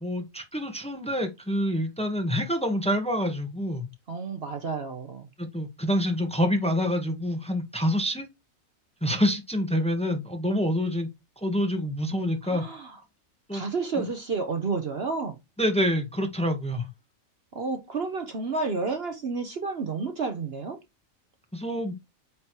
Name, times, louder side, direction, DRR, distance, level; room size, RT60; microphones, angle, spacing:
voice 1, 0.0-3.8 5.4-8.3 9.0-11.1 11.4-12.6 13.5-13.6 14.0-14.1 15.6-16.9 21.5-21.9, equal, 5° left, 1.2 m, -27 dB
voice 2, 4.1-5.3 12.4-13.0 13.5-15.4 17.5-20.8, right 4 dB, 50° right, 1.1 m, -31 dB
8.7 x 3.2 x 4.5 m
omnidirectional pair, 1.4 m